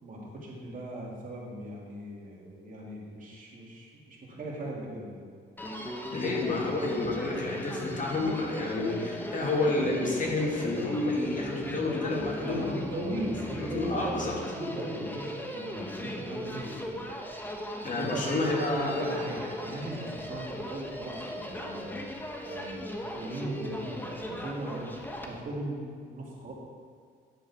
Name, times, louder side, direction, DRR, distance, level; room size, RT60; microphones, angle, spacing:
voice 1, 0.0-5.2 12.1-17.0 17.8-22.0 22.4-26.5, right 1 dB, 40° right, -4 dB, 2.7 m, -38 dB
Human voice, 5.6-25.4, equal, 10° left, 1.1 m, -38 dB
voice 2, 6.1-12.7 13.6-14.3 17.8-19.1, left 2 dB, 40° left, -2 dB, 2.1 m, -29 dB
10.5 x 7.3 x 4.4 m, 2.1 s
cardioid pair, 90°, 20 cm